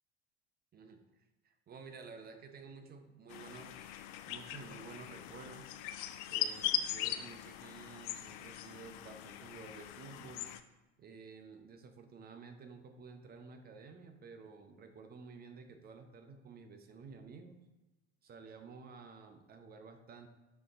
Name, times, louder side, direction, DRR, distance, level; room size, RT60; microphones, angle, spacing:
voice 1, 1.4-5.7 6.3-10.5 11.0-17.6 18.2-20.3, right 4 dB, 30° right, 6 dB, 0.9 m, -52 dB
sound 1, 3.3-10.6, left 11 dB, 50° left, 0.5 m, -40 dB
6.3 x 4.6 x 3.7 m, 1.1 s
figure-of-eight pair, 70°, 33 cm